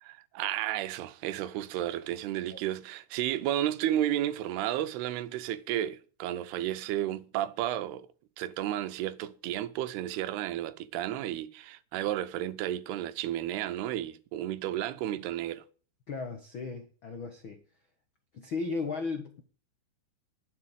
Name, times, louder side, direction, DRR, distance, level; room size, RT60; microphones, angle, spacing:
voice 1, 0.0-8.1 8.4-15.6, right 12 dB, 85° right, 2.9 m, -32 dB
voice 2, 16.1-17.6 18.3-19.4, left 4 dB, 75° left, 1.1 m, -36 dB
11.5 x 7.2 x 8.9 m
omnidirectional pair, 4.5 m